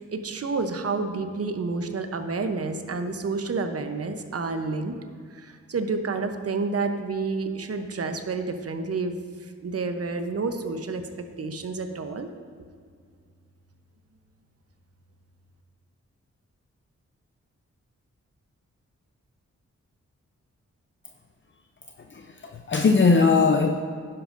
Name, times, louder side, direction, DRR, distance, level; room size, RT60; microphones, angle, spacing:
voice 1, 0.0-5.0 5.3-9.1 9.4-11.0 11.4-12.3, right 4 dB, 55° right, 7 dB, 0.8 m, -29 dB
voice 2, 22.1-23.7, left 4 dB, 40° left, 4 dB, 0.6 m, -20 dB
11.5 x 10.5 x 2.6 m, 2.1 s
wide cardioid pair, 80°, 29 cm